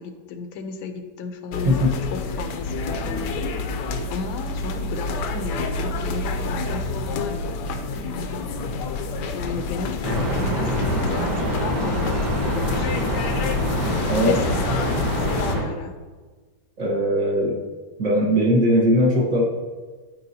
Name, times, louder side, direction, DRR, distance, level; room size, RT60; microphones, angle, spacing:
voice 1, 0.0-8.9 9.3-13.8 14.2-15.9, left 5 dB, 90° left, 7 dB, 1.5 m, -34 dB
sound 1, 1.5-15.6, left 3 dB, 70° left, 1.1 m, -28 dB
sound 2, 10.0-15.6, right 1 dB, 65° right, 2.6 m, -25 dB
voice 2, 14.1-14.4 16.8-17.6 18.0-19.4, equal, 45° right, -2 dB, 1.3 m, -19 dB
12.5 x 4.6 x 2.7 m, 1.4 s
omnidirectional pair, 2.2 m